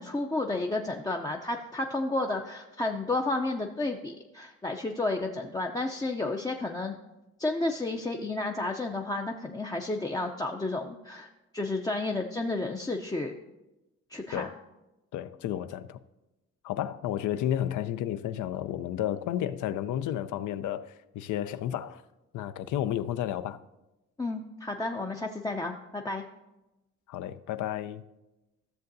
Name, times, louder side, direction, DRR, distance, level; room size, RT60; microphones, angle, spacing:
voice 1, 0.0-6.9 7.4-13.4 14.1-14.5 24.2-26.2, left 2 dB, 15° left, 0.5 m, -31 dB
voice 2, 15.1-16.0 16.6-22.0 22.3-23.6 27.1-28.0, left 11 dB, 80° left, 0.5 m, -32 dB
14.0 x 6.7 x 2.6 m
cardioid pair, 90°, 30 cm